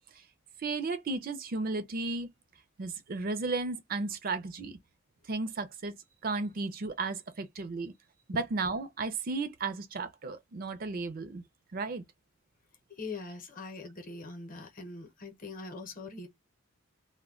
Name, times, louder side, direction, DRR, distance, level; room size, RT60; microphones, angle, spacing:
voice 1, 0.6-2.3 2.8-4.8 5.2-6.0 6.2-7.9 8.3-11.4 11.7-12.0, right 3 dB, 45° right, 0.4 m, -34 dB
voice 2, 13.0-16.3, left 3 dB, 45° left, 0.7 m, -42 dB
2.1 x 2.1 x 3.5 m
head